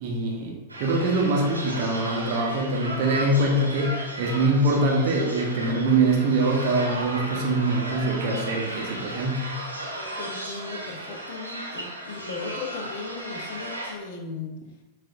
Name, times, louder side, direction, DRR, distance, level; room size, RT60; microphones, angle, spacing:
voice 1, 0.0-9.5, right 2 dB, 50° right, 0 dB, 0.7 m, -24 dB
sound 1, 0.7-13.9, right 1 dB, 85° right, 0.9 m, -35 dB
voice 2, 10.2-14.5, left 4 dB, 50° left, 3 dB, 0.7 m, -37 dB
7.3 x 2.5 x 2.5 m, 1.1 s
figure-of-eight pair, 90°, 0 cm